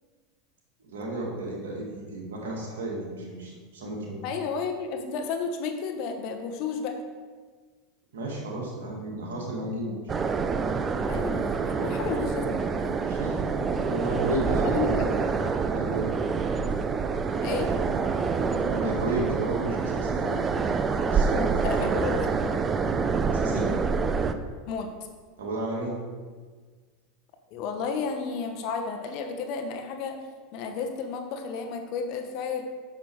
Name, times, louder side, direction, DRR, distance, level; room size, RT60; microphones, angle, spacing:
voice 1, 0.8-4.2 8.1-10.0 13.1-14.8 15.7-16.1 18.7-20.4 21.1-21.8 23.3-23.7 25.4-26.0, right 1 dB, 80° right, -2 dB, 2.1 m, -33 dB
voice 2, 4.2-7.0 11.1-13.1 14.6-15.3 17.4-17.7 21.6-22.5 24.7-24.9 27.5-30.2 30.5-32.6, left 5 dB, 55° left, 5 dB, 1.1 m, -32 dB
sound 1, 10.1-24.3, right 5 dB, 25° right, 0.5 m, -26 dB
6.6 x 5.9 x 4.8 m, 1.5 s
hypercardioid pair, 100°, 0 cm